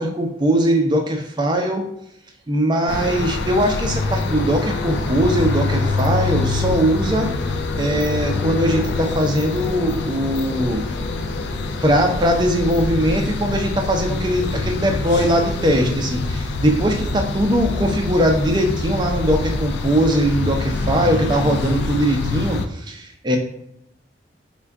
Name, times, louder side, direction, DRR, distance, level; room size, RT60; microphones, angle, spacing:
voice 1, 0.0-1.8 2.5-7.3 7.8-10.9 11.8-23.4, right 1 dB, 25° right, 3 dB, 0.4 m, -20 dB
sound 1, 2.9-22.7, left 3 dB, 75° left, 0.3 m, -25 dB
3.6 x 2.2 x 3.5 m, 0.78 s
head